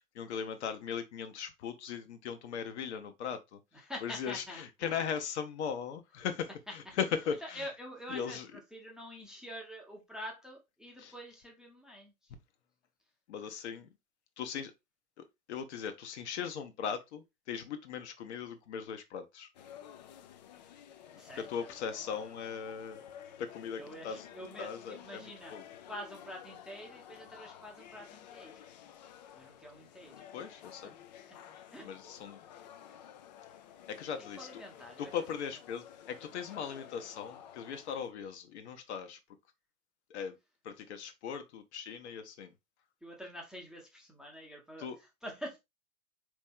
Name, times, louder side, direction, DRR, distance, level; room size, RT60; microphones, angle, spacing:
voice 1, 0.1-3.6 4.0-7.7 8.1-8.5 11.0-11.1 13.3-13.9 14.4-14.7 15.2-19.5 21.3-23.0 23.4-24.3 24.6-25.6 30.3-31.0 31.8-32.4 33.9-34.5 35.0-39.2 40.1-40.4 40.6-42.5 44.8-45.0, left 7 dB, 50° left, 0.9 m, -39 dB
voice 2, 3.8-4.9 7.4-12.1 21.2-22.0 23.8-25.6 25.9-28.5 29.3-30.3 31.7-31.9 34.3-35.1 43.0-45.6, equal, ahead, 0.7 m, -46 dB
sound 1, 19.5-38.1, left 10 dB, 35° left, 0.4 m, -52 dB
4.1 x 3.1 x 3.5 m
figure-of-eight pair, 100°, 43 cm